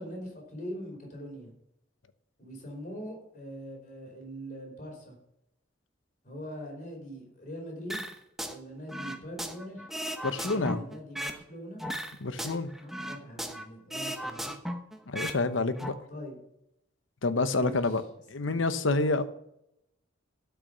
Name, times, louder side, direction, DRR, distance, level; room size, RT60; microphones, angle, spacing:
voice 1, 0.0-1.5 2.4-5.2 6.2-8.1 8.5-9.9 10.5-11.8 12.8-14.6 16.1-16.4 17.5-17.9 18.4-18.6, equal, 40° left, 0 dB, 4.6 m, -42 dB
sound 1, 7.9-8.6 8.9-11.4 11.8-13.7 13.9-15.4 15.7-15.9, equal, ahead, 0.9 m, -36 dB
voice 2, 10.2-10.8 12.2-12.7 15.1-15.9 17.2-18.0 18.3-19.2, left 3 dB, 90° left, 11 dB, 0.9 m, -28 dB
12.5 x 6.0 x 6.8 m, 0.79 s
head